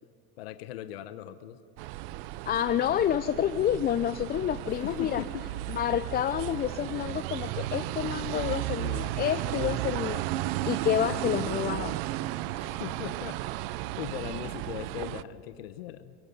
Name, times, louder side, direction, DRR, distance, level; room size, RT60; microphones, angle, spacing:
voice 1, 0.4-1.6 4.7-5.5 12.6-13.4 14.0-16.1, left 12 dB, 90° left, 11 dB, 1.0 m, -39 dB
Walking through busy streets, 1.8-15.2, right 15 dB, 75° right, 0.7 m, -34 dB
voice 2, 2.5-5.2 5.7-10.2 10.6-12.0, left 10 dB, 30° left, 12 dB, 0.5 m, -29 dB
24.0 x 22.5 x 5.5 m, 2.2 s
supercardioid pair, 105°, 30 cm